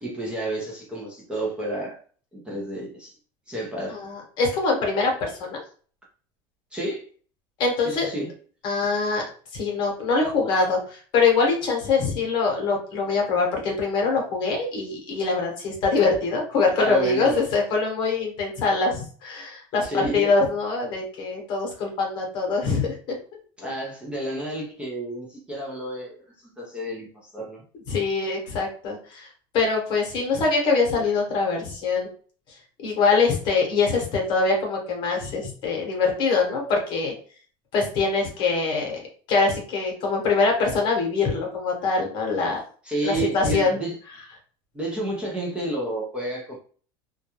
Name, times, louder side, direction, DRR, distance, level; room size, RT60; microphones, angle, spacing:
voice 1, 0.0-2.0 2.3-3.1 3.5-4.0 6.7-7.1 7.8-8.3 16.8-17.4 19.8-20.2 23.6-26.2 26.4-27.6 42.8-44.0 44.7-46.6, right 1 dB, 10° right, -3 dB, 0.5 m, -30 dB
voice 2, 3.9-5.6 7.6-8.1 8.6-9.2 9.5-19.9 20.1-23.2 27.9-29.3 29.5-32.1 32.8-37.1 37.7-39.0 39.3-42.6 43.0-43.8, left 4 dB, 40° left, 1 dB, 0.9 m, -23 dB
2.3 x 2.2 x 2.8 m, 0.43 s
cardioid pair, 160°, 12 cm